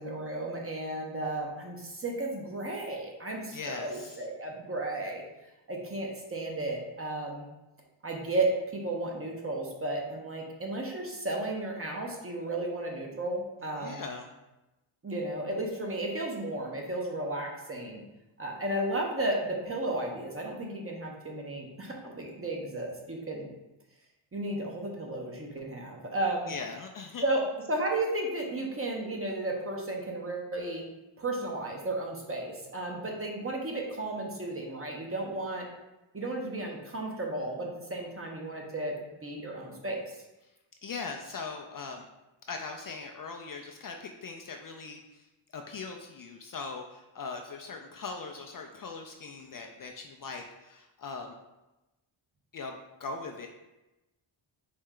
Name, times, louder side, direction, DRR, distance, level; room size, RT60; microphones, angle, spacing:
voice 1, 0.0-5.2 5.7-7.5 8.0-14.1 15.0-18.0 18.4-23.5 24.3-26.5 27.2-30.8 31.2-35.7 36.1-38.9 39.2-40.2, right 2 dB, 25° right, 0 dB, 0.9 m, -33 dB
voice 2, 3.5-4.2 13.8-14.3 26.5-27.2 40.8-42.0 42.5-45.2 45.5-51.3 52.5-53.5, left 4 dB, 45° left, 3 dB, 0.4 m, -40 dB
4.4 x 3.1 x 3.7 m, 1.0 s
cardioid pair, 90°, 49 cm